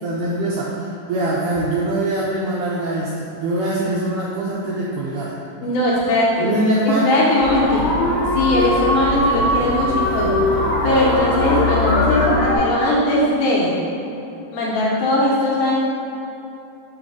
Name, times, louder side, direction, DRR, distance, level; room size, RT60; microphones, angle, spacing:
voice 1, 0.0-5.3 6.4-7.2, right 1 dB, 85° right, -5 dB, 1.8 m, -23 dB
voice 2, 5.6-6.5 6.9-7.8 8.4-10.3 10.8-13.8 14.5-15.8, left 1 dB, 70° left, -5 dB, 2.1 m, -19 dB
sound 1, 7.4-12.6, left 1 dB, 90° left, 1.3 m, -20 dB
6.2 x 4.1 x 4.7 m, 2.8 s
omnidirectional pair, 4.2 m